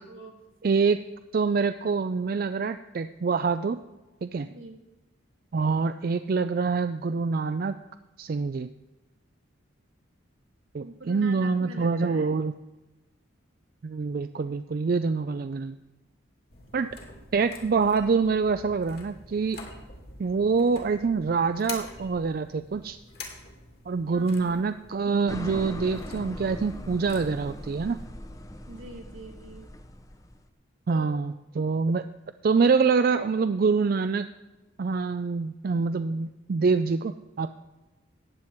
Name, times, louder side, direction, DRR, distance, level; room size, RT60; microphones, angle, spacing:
voice 1, 0.1-0.4 4.4-4.8 10.8-12.3 16.7-16.9 24.1-24.7 28.7-29.7 30.9-31.2, right 3 dB, 75° right, 2 dB, 2.0 m, -44 dB
voice 2, 0.6-1.0 1.3-3.8 4.2-4.5 5.5-7.8 8.2-8.7 10.7-12.5 13.8-15.7 16.7-16.9 17.3-19.6 20.2-23.0 23.9-28.0 30.9-32.0 32.4-34.3 34.8-37.6, right 4 dB, 45° right, 10 dB, 0.3 m, -25 dB
sound 1, 16.5-28.1, left 4 dB, 50° left, 2.2 m, -46 dB
sound 2, 25.3-30.5, equal, 15° left, 0.6 m, -40 dB
14.5 x 9.5 x 4.5 m, 1.1 s
head